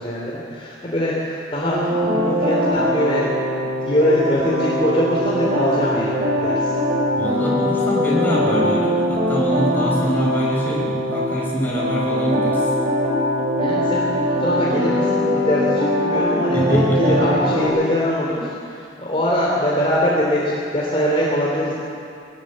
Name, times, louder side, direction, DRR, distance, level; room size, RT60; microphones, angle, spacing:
voice 1, 0.0-3.3 3.6-6.8 13.5-21.7, equal, 30° left, -5 dB, 3.2 m, -23 dB
sound 1, 1.6-11.3 11.8-17.6, equal, 40° right, 5.5 m, -21 dB
voice 2, 7.2-12.6 16.5-17.3, equal, 10° left, -4 dB, 5.5 m, -24 dB
23.5 x 18.5 x 7.5 m, 2.4 s
head